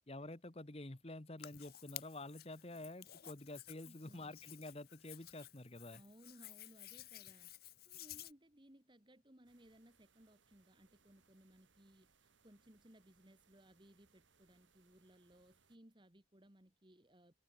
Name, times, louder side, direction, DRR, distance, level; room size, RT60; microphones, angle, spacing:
voice 1, 0.1-6.0, left 2 dB, 30° left, 1.2 m, -49 dB
Hands, 1.4-8.3, left 14 dB, 50° left, 1.0 m, -54 dB
voice 2, 3.8-4.4 5.9-7.6 7.9-17.3, right 1 dB, 25° right, 2.2 m, -64 dB
sound 1, 9.4-15.8, right 5 dB, 80° right, 3.3 m, -75 dB
head